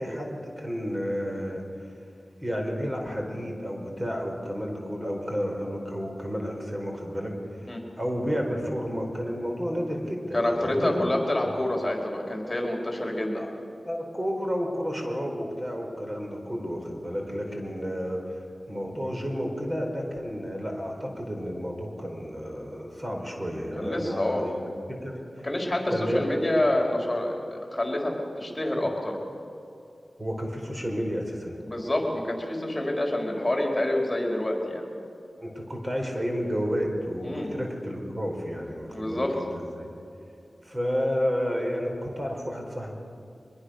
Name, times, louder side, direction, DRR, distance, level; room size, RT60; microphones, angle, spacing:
voice 1, 0.0-1.6 2.4-7.7 8.0-11.1 13.3-13.5 13.8-25.5 25.9-26.2 30.2-31.5 35.4-39.9 40.6-42.9, equal, 25° right, 1 dB, 4.8 m, -31 dB
voice 2, 10.3-13.4 23.7-24.5 25.4-29.2 31.7-34.8 37.2-37.5 38.9-39.4, left 1 dB, 25° left, 0 dB, 4.6 m, -27 dB
23.5 x 21.5 x 6.6 m, 2.6 s
cardioid pair, 50°, 0 cm